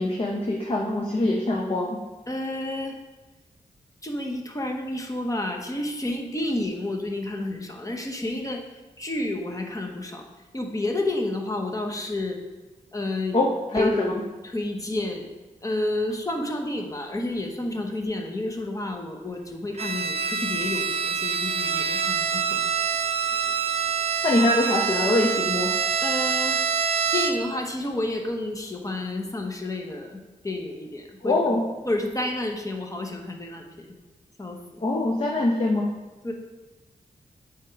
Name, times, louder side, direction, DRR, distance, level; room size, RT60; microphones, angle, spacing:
voice 1, 0.0-2.0 13.3-13.9 24.2-25.7 31.2-31.6 34.8-35.9, left 2 dB, 40° left, -1 dB, 0.9 m, -23 dB
voice 2, 2.3-3.0 4.0-8.6 9.0-10.2 10.5-12.4 12.9-13.4 13.7-14.2 14.4-15.3 15.6-22.6 26.0-26.6 27.1-31.6 31.8-33.9 34.4-34.8 36.2-36.3, left 1 dB, 25° left, 2 dB, 1.1 m, -30 dB
Bowed string instrument, 19.8-27.6, right 6 dB, 45° right, 0.6 m, -26 dB
8.3 x 3.7 x 4.7 m, 1.2 s
cardioid pair, 70°, 14 cm